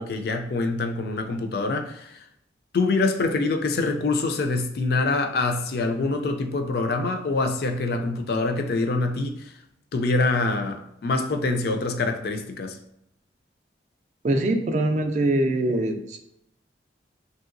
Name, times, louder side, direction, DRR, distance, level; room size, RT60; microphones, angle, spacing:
voice 1, 0.0-2.3 2.7-9.5 9.9-12.8, left 3 dB, 60° left, 5 dB, 0.3 m, -25 dB
voice 2, 14.2-16.2, right 1 dB, 40° right, 5 dB, 0.3 m, -23 dB
3.1 x 2.7 x 2.5 m, 0.76 s
head